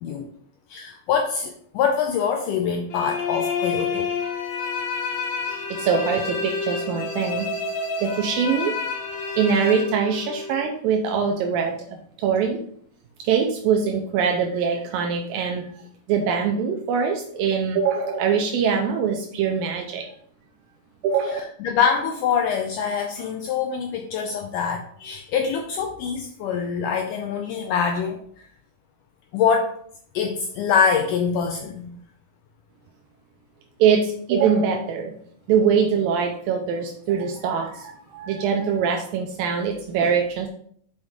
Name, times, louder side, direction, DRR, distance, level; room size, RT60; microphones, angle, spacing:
voice 1, 0.7-4.1 21.3-28.5 29.3-29.7 30.1-32.0, left 6 dB, 85° left, 4 dB, 1.8 m, -24 dB
sound 1, 2.9-10.6, left 4 dB, 70° left, 1.7 m, -29 dB
voice 2, 5.4-7.5 8.0-8.8 9.4-12.6 13.2-15.8 16.1-20.1 21.0-21.4 33.8-35.1 35.5-40.5, right 6 dB, 80° right, 2 dB, 2.3 m, -23 dB
6.2 x 5.3 x 3.5 m, 0.62 s
omnidirectional pair, 4.3 m